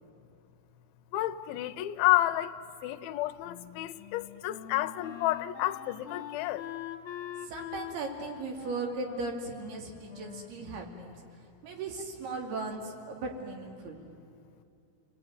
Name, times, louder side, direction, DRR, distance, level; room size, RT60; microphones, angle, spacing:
voice 1, 1.1-2.6 2.8-6.7, left 15 dB, 80° left, 2.5 m, -30 dB
Wind instrument woodwind instrument, 3.4-11.2, left 11 dB, 60° left, 2.6 m, -44 dB
voice 2, 7.4-11.2 11.6-14.0, right 3 dB, 85° right, 4.6 m, -37 dB
30.0 x 20.5 x 9.4 m
omnidirectional pair, 4.4 m